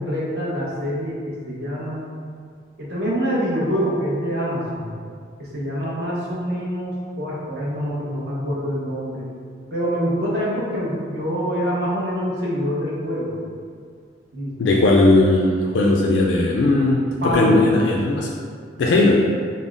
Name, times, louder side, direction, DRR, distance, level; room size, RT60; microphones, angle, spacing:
voice 1, 0.0-2.1 2.8-4.9 5.4-9.3 9.7-13.3 14.3-14.5 17.2-17.6, equal, 60° right, -6 dB, 0.9 m, -25 dB
voice 2, 14.6-18.3 18.8-19.3, left 2 dB, 80° left, -1 dB, 0.3 m, -17 dB
5.3 x 2.0 x 2.5 m, 2.1 s
head